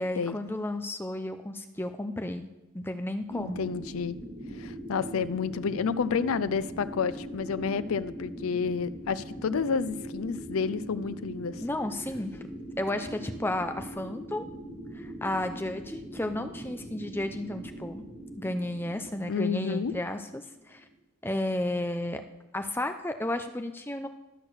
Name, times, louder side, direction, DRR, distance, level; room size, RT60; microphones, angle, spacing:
voice 1, 0.0-2.5 2.7-3.7 11.6-12.4 12.8-14.5 14.9-18.1 18.4-20.8 21.2-22.2 22.5-24.1, left 1 dB, 10° left, 7 dB, 0.6 m, -33 dB
voice 2, 3.3-4.2 4.6-11.6 19.3-19.9, left 5 dB, 80° left, 15 dB, 0.4 m, -30 dB
sound 1, 3.3-20.9, right 1 dB, 10° right, 2.6 m, -42 dB
13.0 x 6.4 x 6.4 m, 0.98 s
head